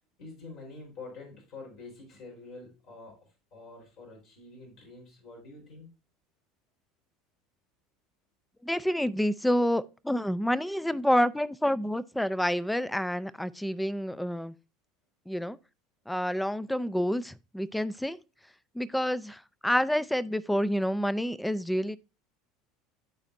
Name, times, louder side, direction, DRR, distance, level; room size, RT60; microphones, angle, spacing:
voice 1, 0.2-5.9, left 3 dB, 60° left, 4.2 m, -47 dB
voice 2, 8.6-14.5 15.3-15.6 16.1-18.2 18.8-22.0, equal, 5° left, 0.5 m, -28 dB
12.0 x 4.2 x 2.6 m
hypercardioid pair, 85°, 0 cm